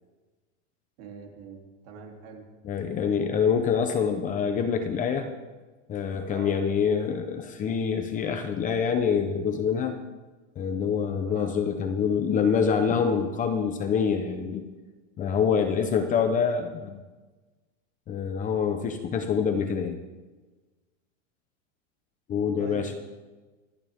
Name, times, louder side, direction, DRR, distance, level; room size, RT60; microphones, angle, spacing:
voice 1, 1.0-2.4 3.0-3.3 6.3-6.6 11.3-11.6 15.5-15.9 22.6-23.0, right 5 dB, 45° right, 1 dB, 3.4 m, -44 dB
voice 2, 2.6-5.3 5.9-10.0 10.6-14.6 15.2-17.0 18.1-20.0 22.3-23.0, left 6 dB, 20° left, 6 dB, 1.0 m, -26 dB
27.0 x 12.0 x 3.7 m, 1.3 s
supercardioid pair, 160°, 37 cm